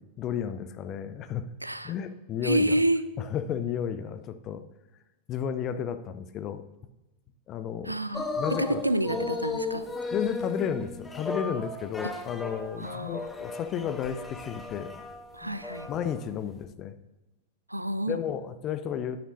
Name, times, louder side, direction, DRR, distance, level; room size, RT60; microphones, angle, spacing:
voice 1, 0.0-1.5 1.8-2.8 3.2-4.6 5.3-6.6 7.5-8.0 8.4-8.8 9.1-9.2 10.1-15.0 15.4-15.6 15.9-16.9 18.1-19.2, left 8 dB, 35° left, 11 dB, 0.6 m, -33 dB
voice 2, 1.6-1.9 2.4-3.0 7.8-8.3 8.6-9.8 12.8-13.3 15.3-15.9 17.7-18.2, right 1 dB, 85° right, 13 dB, 0.4 m, -28 dB
sound 1, 8.1-16.2 16.6-16.7, left 3 dB, 10° left, 0.9 m, -35 dB
10.0 x 9.2 x 2.7 m, 1.1 s
figure-of-eight pair, 90°, 0 cm